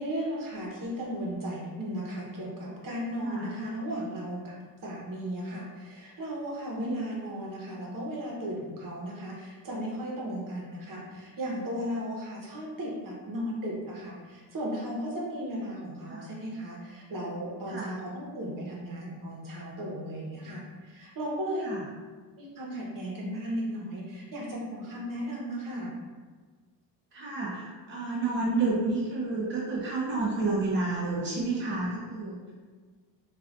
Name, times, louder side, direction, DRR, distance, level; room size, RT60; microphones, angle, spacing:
voice 1, 0.0-4.5 4.8-21.7 22.4-25.9, equal, 45° right, -3 dB, 1.1 m, -35 dB
voice 2, 27.1-32.5, right 3 dB, 25° right, -7 dB, 0.8 m, -30 dB
4.8 x 2.6 x 2.5 m, 1.5 s
cardioid pair, 105°, 45 cm